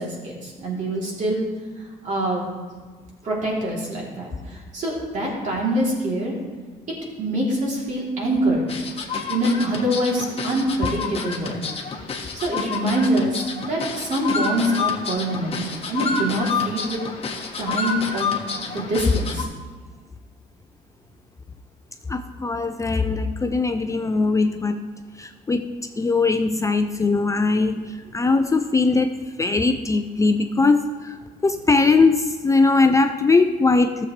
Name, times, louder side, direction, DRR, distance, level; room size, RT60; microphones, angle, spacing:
voice 1, 0.0-1.5 2.0-2.4 3.2-6.3 7.2-8.8 9.3-11.7 12.3-15.6 15.9-17.0 17.6-18.3 18.7-19.5, right 1 dB, 45° right, -4 dB, 3.2 m, -24 dB
sound 1, 8.7-19.4, left 4 dB, 35° left, 1.3 m, -29 dB
voice 2, 22.1-24.8 25.2-31.2 31.4-34.1, left 3 dB, 20° left, 7 dB, 0.5 m, -20 dB
14.0 x 7.2 x 3.2 m, 1.5 s
cardioid pair, 110°, 17 cm